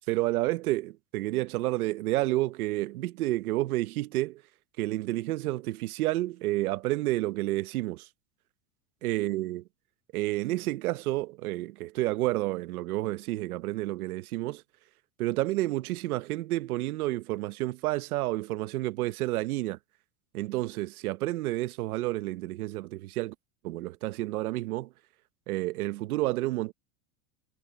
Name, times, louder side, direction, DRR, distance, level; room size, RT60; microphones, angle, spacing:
voice 1, 0.1-4.4 4.8-8.1 9.0-9.6 10.1-14.6 15.2-19.8 20.3-23.3 23.6-24.9 25.5-26.7, right 17 dB, 80° right, 1.1 m, -30 dB
supercardioid pair, 170°, 43 cm